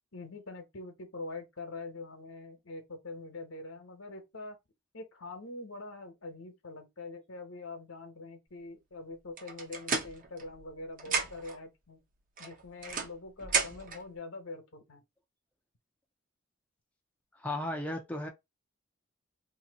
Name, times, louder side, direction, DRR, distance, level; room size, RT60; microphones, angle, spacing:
voice 1, 0.1-4.6 4.9-12.0 12.4-15.0, left 2 dB, 75° left, 1.0 m, -44 dB
sound 1, 9.4-10.7 11.0-11.6 12.4-14.0, right 5 dB, 40° right, 0.8 m, -33 dB
voice 2, 17.3-18.3, left 1 dB, 5° left, 0.5 m, -35 dB
2.8 x 2.7 x 3.9 m
head